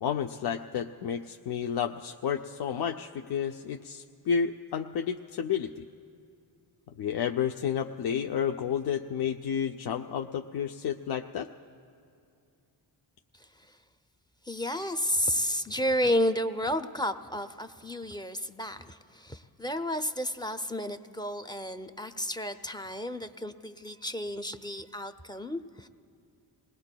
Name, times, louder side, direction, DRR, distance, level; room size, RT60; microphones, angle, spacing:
voice 1, 0.0-5.8 7.0-11.5, left 7 dB, 60° left, 5 dB, 0.5 m, -31 dB
voice 2, 13.3-13.8 14.4-25.9, equal, 10° left, 9 dB, 0.5 m, -32 dB
29.0 x 19.0 x 2.2 m, 2.5 s
cardioid pair, 70°, 45 cm